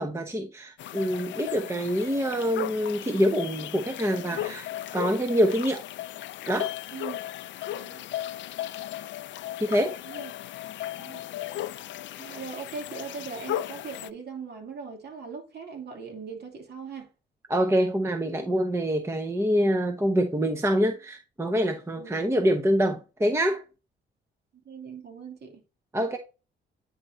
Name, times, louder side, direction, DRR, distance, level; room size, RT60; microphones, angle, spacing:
voice 1, 0.0-4.7 4.9-5.8 6.5-6.7 9.6-10.0 17.5-23.6 25.9-26.2, equal, 15° right, 0.9 m, -25 dB
sound 1, 0.8-14.1, left 13 dB, 70° left, 0.4 m, -36 dB
voice 2, 7.7-8.1 9.8-10.3 11.0-11.2 12.2-17.1 22.0-22.1 24.6-25.6, right 5 dB, 55° right, 2.7 m, -40 dB
9.6 x 4.3 x 2.7 m
cardioid pair, 90°, 20 cm